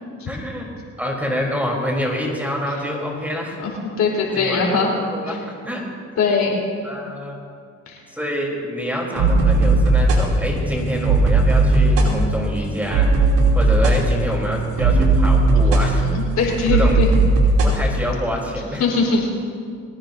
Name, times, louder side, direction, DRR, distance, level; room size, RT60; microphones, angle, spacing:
voice 1, 0.3-0.7 1.0-3.6 4.3-5.8 6.8-7.4 8.1-16.1 16.7-17.0 17.6-18.8, equal, 5° right, -1 dB, 3.6 m, -27 dB
voice 2, 4.0-4.9 5.3-5.4 6.2-6.5 7.9-8.0 16.0-16.1 16.4-17.1 18.8-19.3, left 4 dB, 65° left, -2 dB, 4.1 m, -20 dB
sound 1, 9.2-17.7, right 2 dB, 90° right, 2.9 m, -17 dB
23.0 x 18.0 x 2.7 m, 2.2 s
cardioid pair, 90°, 30 cm